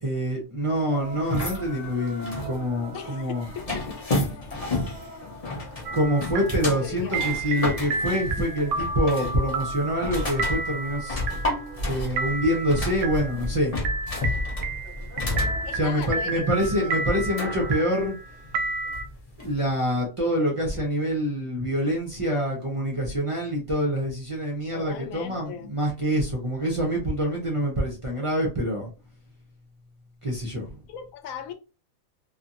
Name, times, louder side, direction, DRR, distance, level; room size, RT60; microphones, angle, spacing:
voice 1, 0.0-3.5 5.9-11.2 11.8-13.8 15.7-18.2 19.4-28.9 30.2-30.7, equal, 35° right, 0.6 m, -26 dB
sound 1, 0.7-13.3 14.8-17.8, equal, 65° left, 1.1 m, -45 dB
sound 2, 1.1-19.7, left 2 dB, 35° left, 0.7 m, -32 dB
voice 2, 2.9-4.4 4.8-4.9 6.8-7.4 15.6-16.4 16.7-17.0 24.7-25.7 30.9-31.5, left 8 dB, 90° left, 1.0 m, -39 dB
sound 3, 5.9-19.1, right 3 dB, 75° right, 0.9 m, -32 dB
2.7 x 2.5 x 2.5 m
omnidirectional pair, 1.4 m